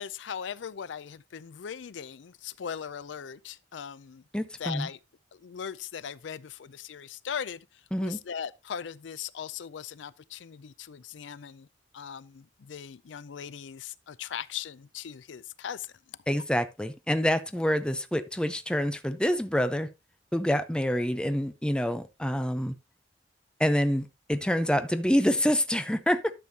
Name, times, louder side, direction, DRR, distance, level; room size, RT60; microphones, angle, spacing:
voice 1, 0.0-4.2 4.6-5.0 5.3-7.6 8.0-11.7 11.9-15.9, left 7 dB, 80° left, 0.4 m, -39 dB
voice 2, 4.3-4.9 7.9-8.2 16.3-19.9 20.3-22.7 23.6-26.3, equal, 5° left, 0.6 m, -27 dB
12.0 x 6.9 x 2.8 m
head